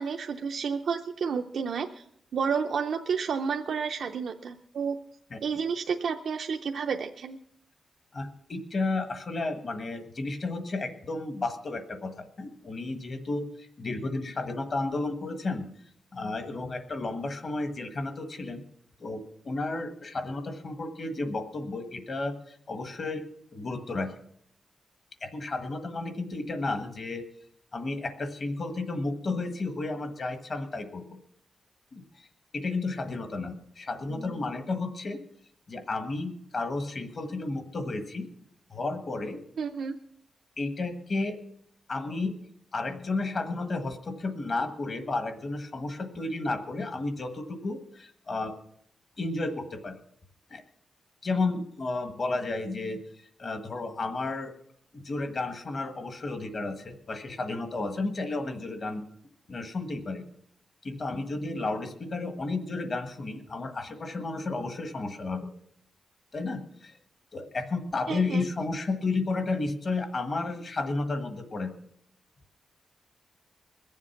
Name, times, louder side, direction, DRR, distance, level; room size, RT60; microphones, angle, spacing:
voice 1, 0.0-2.0 2.3-5.0 5.4-7.4 39.6-39.9 68.1-68.4, right 6 dB, 70° right, 3 dB, 0.6 m, -30 dB
voice 2, 8.1-15.6 16.1-18.6 19.0-23.2 23.5-24.1 25.2-27.2 27.7-31.0 31.9-32.3 32.5-35.2 35.7-38.3 38.7-39.4 40.6-41.4 41.9-42.3 42.7-48.6 49.2-49.9 50.5-50.6 51.2-53.0 53.4-54.5 54.9-59.0 59.5-60.2 60.8-65.5 66.3-67.0 67.3-71.7, left 3 dB, 40° left, 8 dB, 1.4 m, -32 dB
21.5 x 7.3 x 5.8 m, 0.70 s
wide cardioid pair, 165°, 0 cm